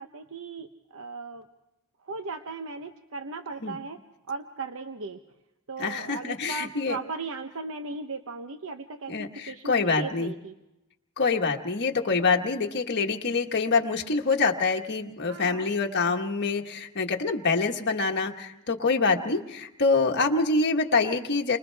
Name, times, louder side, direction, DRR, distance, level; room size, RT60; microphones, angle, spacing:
voice 1, 0.0-1.5 2.0-4.0 4.3-5.2 5.7-10.5 15.3-15.7, right 4 dB, 65° right, 7 dB, 0.9 m, -37 dB
voice 2, 5.8-7.0 9.1-10.3 11.2-21.6, left 4 dB, 50° left, 2 dB, 1.4 m, -25 dB
29.5 x 25.5 x 3.5 m, 0.95 s
head